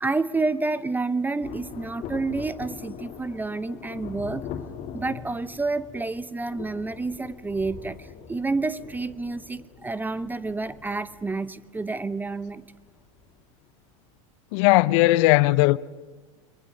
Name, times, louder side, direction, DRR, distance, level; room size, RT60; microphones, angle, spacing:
voice 1, 0.0-4.5 4.9-12.6, right 3 dB, 10° right, 0.7 m, -29 dB
Thunder, 1.4-13.4 13.7-13.8, left 7 dB, 45° left, 2.5 m, -42 dB
voice 2, 14.5-15.8, left 19 dB, 60° left, 0.6 m, -18 dB
28.5 x 22.0 x 6.5 m
hypercardioid pair, 100°, 17 cm